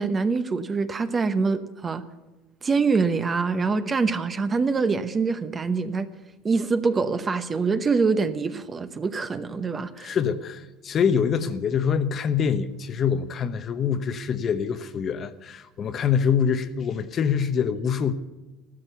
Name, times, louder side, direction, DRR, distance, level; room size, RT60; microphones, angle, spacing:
voice 1, 0.0-2.0 2.6-6.1 6.4-10.2, right 4 dB, 20° right, 0.9 m, -25 dB
voice 2, 10.0-18.1, left 7 dB, 35° left, 0.9 m, -25 dB
15.0 x 12.5 x 6.9 m
supercardioid pair, 120°, 0 cm